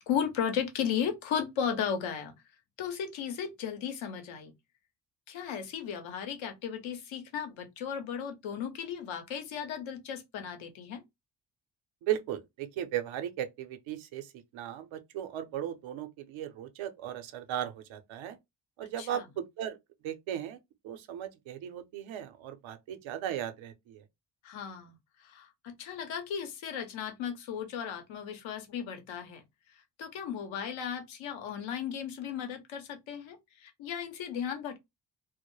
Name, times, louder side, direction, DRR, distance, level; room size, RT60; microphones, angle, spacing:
voice 1, 0.0-2.3 2.8-4.5 5.3-11.0 19.0-19.2 24.4-24.9 25.2-29.4 30.0-34.8, left 8 dB, 85° left, 0.8 m, -35 dB
voice 2, 12.0-18.4 18.8-19.8 20.0-24.0, right 11 dB, 80° right, 0.6 m, -37 dB
2.2 x 2.1 x 3.0 m
supercardioid pair, 65°, 46 cm